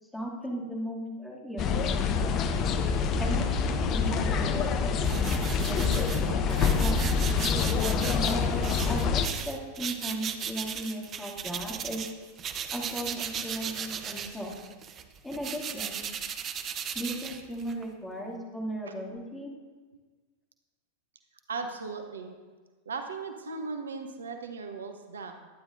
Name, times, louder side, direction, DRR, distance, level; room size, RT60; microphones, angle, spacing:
voice 1, 0.1-1.7 3.2-5.1 5.5-7.0 8.1-12.0 12.7-14.5 15.2-16.0 16.9-19.5, right 1 dB, 5° left, -3 dB, 2.5 m, -36 dB
sound 1, 1.6-9.3, left 5 dB, 35° left, 0.8 m, -26 dB
sound 2, 5.0-12.1 12.4-17.8, right 8 dB, 30° right, 0.9 m, -37 dB
voice 2, 21.5-22.4 22.9-25.5, right 4 dB, 70° right, 6 dB, 0.9 m, -37 dB
21.5 x 9.8 x 2.6 m, 1.4 s
figure-of-eight pair, 90°, 0 cm